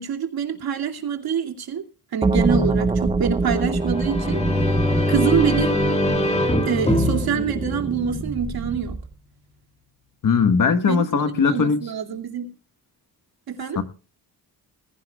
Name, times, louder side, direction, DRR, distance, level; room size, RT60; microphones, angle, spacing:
voice 1, 0.0-1.8 2.1-4.4 4.6-4.8 5.1-5.8 6.6-9.0 10.8-12.5 13.5-13.8, right 7 dB, 65° right, 2.6 m, -26 dB
sound 1, 2.2-9.1, right 3 dB, 15° right, 0.7 m, -25 dB
sound 2, 3.8-8.5, left 1 dB, 15° left, 2.1 m, -23 dB
voice 2, 10.2-11.8 13.7-13.8, left 6 dB, 55° left, 1.5 m, -19 dB
21.0 x 15.5 x 2.4 m
wide cardioid pair, 140°, 39 cm